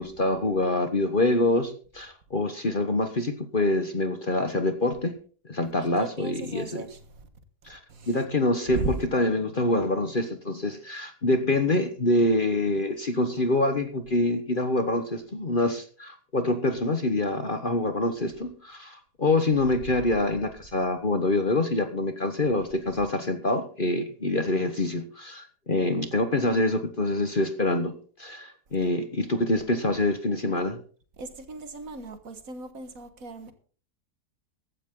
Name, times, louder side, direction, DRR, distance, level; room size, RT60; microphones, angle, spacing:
voice 1, 0.0-5.1 5.5-6.8 7.6-7.8 8.1-27.9 28.2-30.8, left 2 dB, 35° left, 1.3 m, -26 dB
voice 2, 6.0-7.3 7.6-8.2 8.7-9.0 31.2-33.5, right 3 dB, 55° right, 1.9 m, -37 dB
15.5 x 12.5 x 3.8 m
omnidirectional pair, 1.8 m